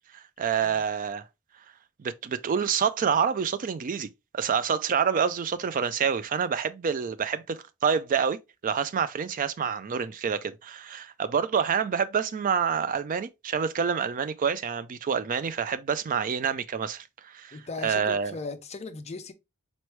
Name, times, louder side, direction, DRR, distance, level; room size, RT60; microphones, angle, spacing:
voice 1, 0.1-1.2 2.0-4.1 4.3-17.6 17.8-18.3, right 7 dB, 40° right, 0.3 m, -27 dB
voice 2, 17.5-19.3, left 3 dB, 30° left, 0.5 m, -38 dB
4.2 x 3.1 x 3.0 m
head